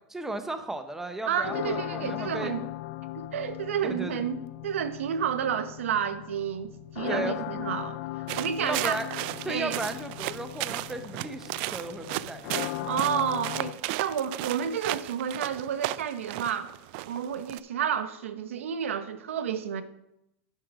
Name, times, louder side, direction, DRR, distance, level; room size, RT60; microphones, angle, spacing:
voice 1, 0.1-2.7 3.8-4.2 7.1-7.6 8.6-9.1 9.4-12.6, right 2 dB, 5° right, 8 dB, 0.8 m, -35 dB
voice 2, 1.3-2.6 3.1-8.0 8.4-9.0 9.5-9.8 12.8-16.7 17.0-19.8, right 8 dB, 90° right, 11 dB, 0.8 m, -30 dB
sound 1, 1.4-13.7, left 17 dB, 60° left, 0.4 m, -38 dB
sound 2, 8.3-17.6, right 18 dB, 55° right, 0.3 m, -35 dB
10.0 x 4.7 x 6.1 m, 0.84 s
supercardioid pair, 130°, 7 cm